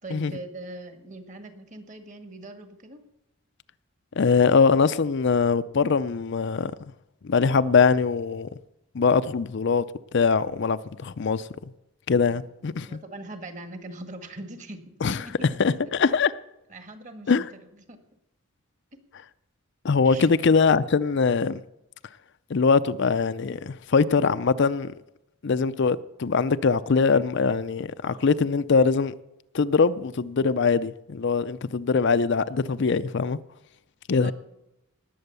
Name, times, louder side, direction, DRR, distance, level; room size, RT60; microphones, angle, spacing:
voice 1, 0.0-3.0 12.3-15.6 16.7-18.0 18.9-19.0 20.0-20.3 34.2-34.3, right 2 dB, 35° right, 1.7 m, -41 dB
voice 2, 4.2-6.7 7.2-8.5 8.9-9.8 10.1-11.5 12.1-12.9 15.0-15.2 15.6-16.3 17.3-17.5 19.8-21.6 22.5-24.9 25.4-29.1 29.5-33.4 34.1-34.3, left 5 dB, 55° left, 0.5 m, -22 dB
19.0 x 7.9 x 6.8 m
head